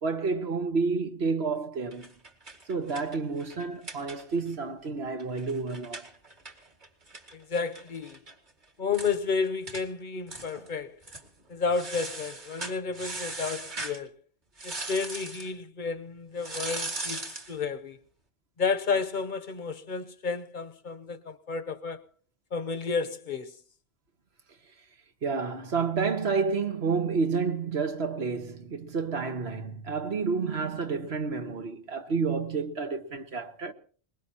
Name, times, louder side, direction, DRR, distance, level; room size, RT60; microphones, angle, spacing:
voice 1, 0.0-2.1 2.7-6.1 25.2-33.7, right 4 dB, 70° right, 1.5 m, -30 dB
sound 1, 1.9-4.5 4.8-4.9 5.2-8.3 8.6-8.7 8.9-9.2 9.7-9.8 10.3-10.7 11.0-11.3 11.7-14.0 14.6-15.5 16.4-17.5, right 2 dB, 45° right, 2.1 m, -39 dB
voice 2, 7.3-8.2 8.8-11.0 11.5-14.1 14.6-18.0 18.6-22.0 22.5-23.6, left 5 dB, 50° left, 1.0 m, -31 dB
22.5 x 20.5 x 2.9 m
omnidirectional pair, 1.1 m